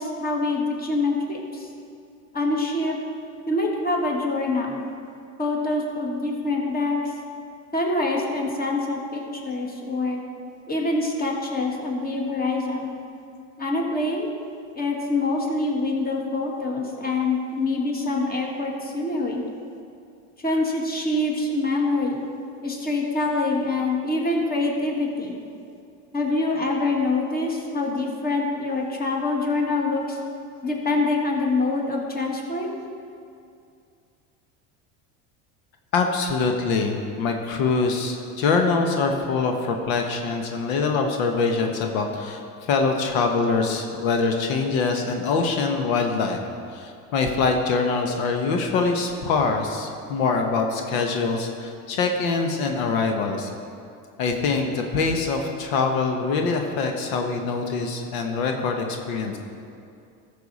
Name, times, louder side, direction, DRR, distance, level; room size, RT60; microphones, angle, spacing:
voice 1, 0.0-1.7 2.3-3.0 3.5-4.8 5.4-7.1 7.7-10.2 10.7-13.0 13.6-14.3 14.8-19.4 20.4-22.2 22.6-25.4 26.1-30.2 30.6-32.7, left 2 dB, 25° left, 0 dB, 1.9 m, -25 dB
voice 2, 35.9-42.4 42.7-53.5 54.2-59.4, left 4 dB, 80° left, 3 dB, 1.1 m, -24 dB
14.0 x 6.9 x 4.1 m, 2.5 s
supercardioid pair, 100°, 40 cm